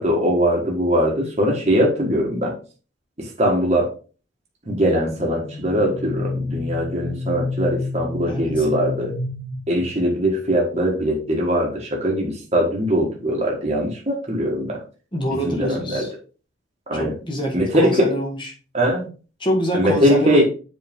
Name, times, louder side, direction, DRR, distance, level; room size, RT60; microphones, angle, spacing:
voice 1, 0.0-2.5 3.2-3.9 4.7-9.2 9.7-14.8 15.4-16.1 16.9-17.1 17.5-18.1 18.7-19.1 19.7-20.4, equal, 35° right, -2 dB, 1.5 m, -21 dB
sound 1, 4.7-10.2, left 3 dB, 90° left, 1.5 m, -30 dB
voice 2, 8.3-8.6 15.1-16.1 17.0-18.4 19.4-20.4, equal, 25° left, 1 dB, 1.7 m, -25 dB
7.6 x 4.3 x 3.5 m, 0.36 s
head